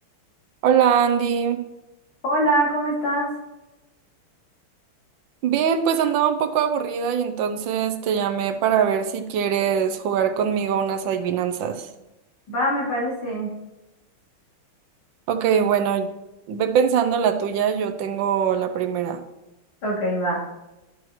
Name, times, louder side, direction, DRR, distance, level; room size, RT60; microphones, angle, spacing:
voice 1, 0.6-1.6 5.4-11.9 15.3-16.1 16.5-19.2, right 8 dB, 70° right, 7 dB, 1.3 m, -22 dB
voice 2, 2.2-3.3 12.5-13.5 19.8-20.4, right 1 dB, 70° left, -5 dB, 3.6 m, -23 dB
12.5 x 6.1 x 3.1 m, 0.99 s
omnidirectional pair, 2.4 m